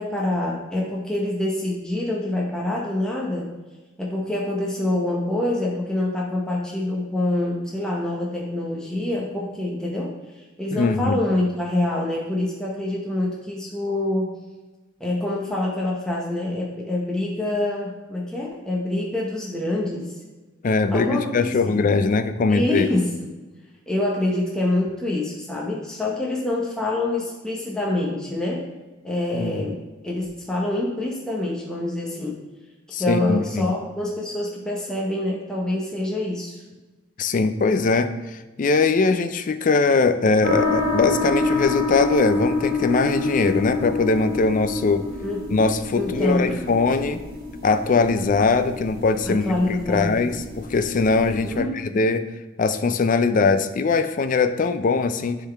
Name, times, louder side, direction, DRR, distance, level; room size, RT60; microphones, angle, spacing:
voice 1, 0.0-3.5 4.0-14.3 15.0-20.2 20.9-21.8 22.5-23.3 23.9-28.7 29.0-32.4 33.0-36.6 45.2-45.4 46.0-46.6 49.3-50.3 51.4-52.0, left 1 dB, 5° left, -4 dB, 0.8 m, -26 dB
voice 2, 10.7-11.2 20.6-22.9 29.3-29.6 32.9-33.7 37.2-38.1 38.6-45.1 45.5-47.2 47.6-52.2 52.6-55.4, left 4 dB, 40° left, 10 dB, 0.4 m, -21 dB
sound 1, 40.4-51.6, left 2 dB, 50° right, 1.5 m, -27 dB
10.0 x 3.9 x 3.4 m, 1.2 s
head